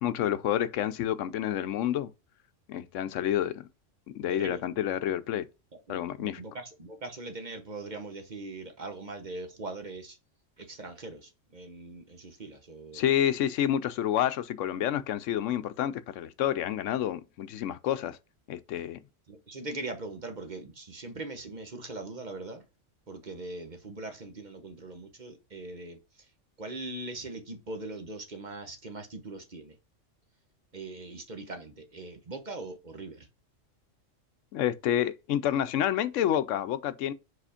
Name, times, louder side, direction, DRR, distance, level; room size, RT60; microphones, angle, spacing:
voice 1, 0.0-2.1 2.7-3.7 4.1-5.5 5.9-6.4 12.9-18.2 18.5-19.0 34.5-37.1, left 11 dB, 80° left, 0.9 m, -29 dB
voice 2, 4.2-4.6 5.7-10.2 10.6-13.0 19.3-22.6 23.1-26.3 26.6-29.8 30.7-33.3, right 2 dB, 40° right, 1.0 m, -41 dB
4.9 x 4.2 x 4.9 m
omnidirectional pair, 1.3 m